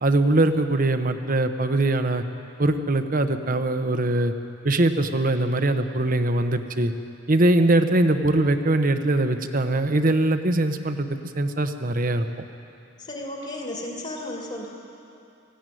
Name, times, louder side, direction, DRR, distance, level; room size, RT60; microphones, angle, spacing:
voice 1, 0.0-2.2 2.6-4.3 4.6-6.9 7.3-11.1 11.3-12.3, right 2 dB, 45° right, 8 dB, 1.0 m, -22 dB
voice 2, 13.0-14.7, left 1 dB, 40° left, -2 dB, 2.4 m, -33 dB
18.0 x 15.5 x 9.3 m, 2.6 s
head